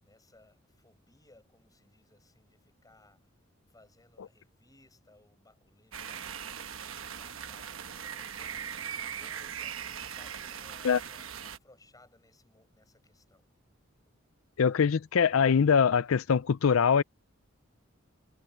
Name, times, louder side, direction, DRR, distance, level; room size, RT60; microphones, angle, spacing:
voice 1, 0.0-3.3 3.7-13.4, left 2 dB, 20° left, 6.7 m, -62 dB
sound 1, 5.9-11.6, right 8 dB, 70° right, 1.1 m, -40 dB
voice 2, 14.6-17.0, left 6 dB, 85° left, 0.5 m, -23 dB
head